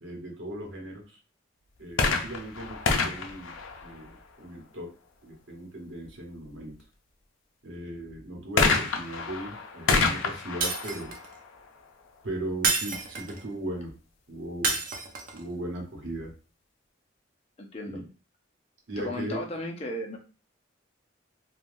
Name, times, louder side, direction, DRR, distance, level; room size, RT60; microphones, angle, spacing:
voice 1, 0.0-1.2 1.8-4.9 5.2-6.8 7.6-11.1 12.2-13.9 14.3-14.8 15.3-16.3 17.8-18.1 18.9-19.4, right 1 dB, 70° right, 1 dB, 0.9 m, -38 dB
sound 1, 1.9-4.5 8.6-12.2 13.0-13.1, left 4 dB, 80° left, 0.5 m, -28 dB
Shatter, 10.6-11.3 12.6-13.5 14.6-15.4, right 4 dB, 45° right, 0.5 m, -29 dB
voice 2, 17.6-18.0 19.0-20.2, left 1 dB, 30° left, 1 dB, 0.5 m, -35 dB
3.2 x 2.3 x 2.5 m, 0.35 s
head